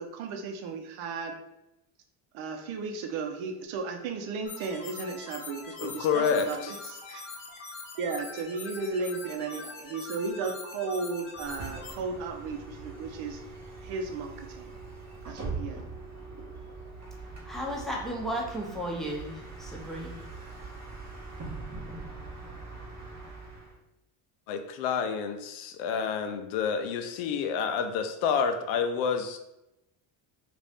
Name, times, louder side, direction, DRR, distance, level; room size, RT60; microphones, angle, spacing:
voice 1, 0.0-1.4 2.3-7.2 8.0-13.4 13.8-14.7 15.3-15.8, right 4 dB, 70° right, 5 dB, 0.7 m, -35 dB
sound 1, 4.5-11.9, left 4 dB, 55° left, 0.9 m, -43 dB
voice 2, 5.8-6.7 24.5-29.4, left 6 dB, 85° left, 7 dB, 0.6 m, -29 dB
Bus, 11.3-23.8, right 3 dB, 35° right, 0.9 m, -42 dB
voice 3, 17.4-20.2, equal, ahead, -2 dB, 0.6 m, -34 dB
2.6 x 2.5 x 3.4 m, 0.89 s
cardioid pair, 100°, 49 cm